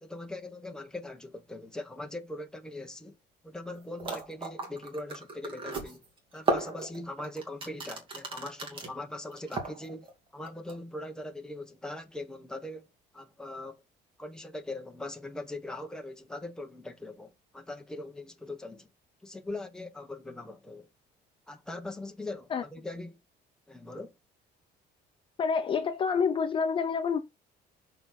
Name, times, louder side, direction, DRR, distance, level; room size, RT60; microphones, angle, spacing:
voice 1, 0.0-3.2 3.4-6.0 6.3-12.9 13.1-13.8 14.2-18.9 19.2-20.9 21.5-23.2 23.7-24.2, left 2 dB, 5° left, 1.1 m, -41 dB
sound 1, 3.7-3.8 4.0-8.9 9.3-10.1 10.5-10.8, right 3 dB, 30° right, 2.6 m, -34 dB
voice 2, 25.4-27.2, left 6 dB, 30° left, 0.7 m, -27 dB
7.0 x 5.3 x 4.1 m
cardioid pair, 175°, 18 cm